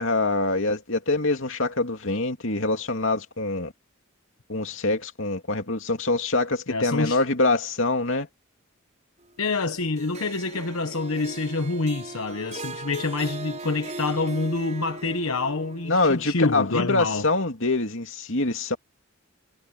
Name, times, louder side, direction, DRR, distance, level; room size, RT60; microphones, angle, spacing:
voice 1, 0.0-3.7 4.5-8.3 15.8-18.8, left 2 dB, 65° left, 2.9 m, -25 dB
voice 2, 6.7-7.2 9.4-17.3, left 3 dB, 85° left, 1.2 m, -27 dB
Harp, 10.0-16.3, right 2 dB, 35° right, 7.3 m, -39 dB
head